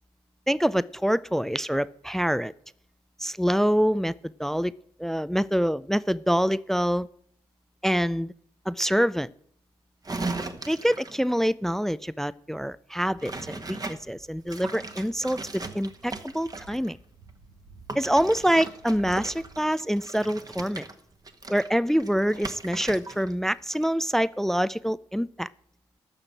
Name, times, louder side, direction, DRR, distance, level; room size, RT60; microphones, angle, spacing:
voice 1, 0.5-2.5 3.2-4.1 4.4-4.7 5.0-7.1 7.8-8.3 8.7-9.3 10.7-17.0 18.0-20.9 21.5-25.5, equal, 5° left, 20 dB, 0.4 m, -25 dB
sound 1, 10.0-11.3 13.2-14.0 14.5-16.9 17.9-23.3 23.6-23.9, right 3 dB, 30° right, 1.5 m, -37 dB
sound 2, 13.1-19.7, right 3 dB, 85° right, 1.8 m, -52 dB
12.0 x 6.5 x 8.8 m, 0.64 s
hypercardioid pair, 45°, 13 cm